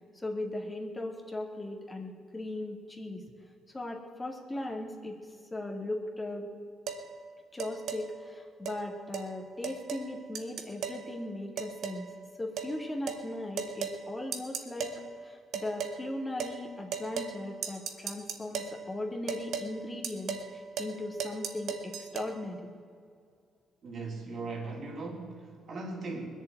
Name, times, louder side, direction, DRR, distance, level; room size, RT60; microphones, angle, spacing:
voice 1, 0.1-3.2 3.7-5.2 5.5-6.5 7.5-12.1 12.4-14.9 15.2-22.7, left 1 dB, 15° left, 1 dB, 2.1 m, -38 dB
sound 1, 6.9-7.0 7.6-8.0 8.6-8.8 9.1-9.3 9.6-10.1 10.3-11.0 11.6-12.0 12.6-12.7 13.1-13.2 13.6-14.0 14.3-15.0 15.5-16.0 16.4-16.6 16.9-17.4 17.6-18.8 19.3-19.7 20.0-20.5 20.8-20.9 21.2-22.3, right 7 dB, 75° right, 1.4 m, -36 dB
voice 2, 23.8-26.3, right 3 dB, 55° right, 0 dB, 3.3 m, -38 dB
20.5 x 7.3 x 9.0 m, 2.3 s
cardioid pair, 90°, 0 cm